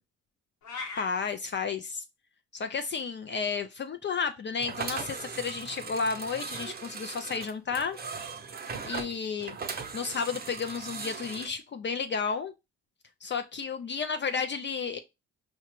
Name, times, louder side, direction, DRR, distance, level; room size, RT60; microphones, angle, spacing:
sound 1, 0.6-1.1, left 4 dB, 75° left, 1.1 m, -38 dB
voice 1, 1.0-2.0 2.5-8.0 8.8-9.6 9.9-12.5 13.2-15.0, left 5 dB, 40° left, 0.4 m, -32 dB
sound 2, 4.6-11.5, right 5 dB, 30° right, 0.6 m, -39 dB
4.8 x 2.1 x 2.9 m
cardioid pair, 90°, 30 cm